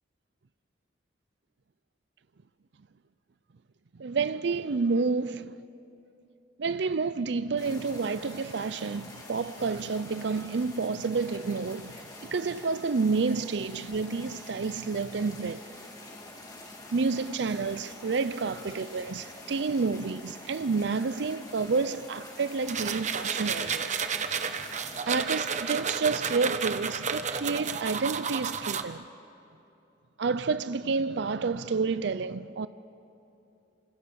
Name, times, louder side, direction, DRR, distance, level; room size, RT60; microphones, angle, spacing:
voice 1, 4.0-5.5 6.6-11.9 12.3-15.6 16.9-24.0 25.1-29.0 30.2-32.7, right 4 dB, 65° right, 0.5 m, -29 dB
sound 1, 7.6-25.0, left 2 dB, 20° left, 3.5 m, -46 dB
sound 2, 22.7-28.8, right 6 dB, 40° right, 1.0 m, -31 dB
28.5 x 26.0 x 7.0 m
head